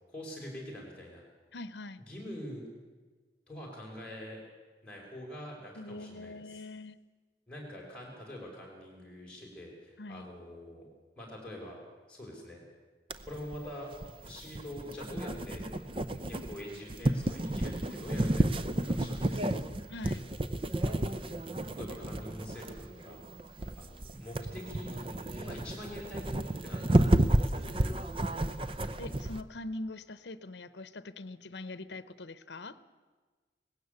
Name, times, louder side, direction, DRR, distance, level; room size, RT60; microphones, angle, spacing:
voice 1, 0.1-1.2 2.0-2.6 3.5-4.4 4.8-6.6 7.5-10.9 11.2-11.8 12.1-12.6 13.2-13.9 14.2-15.6 16.3-18.6 18.8-19.7 20.8-21.2 21.7-23.2 23.8-25.0 25.4-27.9, left 1 dB, 5° left, -3 dB, 5.5 m, -45 dB
voice 2, 1.5-2.0 5.7-7.0 10.0-10.3 19.9-20.3 29.0-32.8, left 2 dB, 80° left, 15 dB, 0.8 m, -43 dB
sound 1, 13.1-29.4, right 1 dB, 30° right, 0.7 m, -31 dB
19.5 x 16.5 x 8.2 m, 1.4 s
head